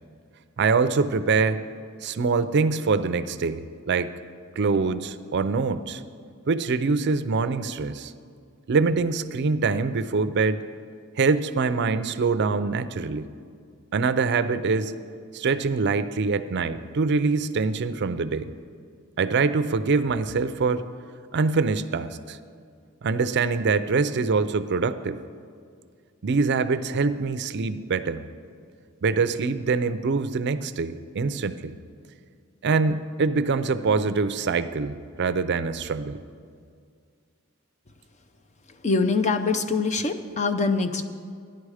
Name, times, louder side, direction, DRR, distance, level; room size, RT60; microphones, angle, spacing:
voice 1, 0.6-1.6 2.0-4.1 4.6-6.0 6.5-8.1 8.7-10.6 11.2-13.3 13.9-14.9 15.3-18.5 19.2-20.8 21.3-22.4 23.0-25.2 26.2-28.2 29.0-31.7 32.6-36.2, right 4 dB, 55° right, 12 dB, 0.5 m, -24 dB
voice 2, 38.8-41.0, left 4 dB, 35° left, 8 dB, 0.6 m, -24 dB
14.0 x 10.5 x 4.9 m, 2.2 s
head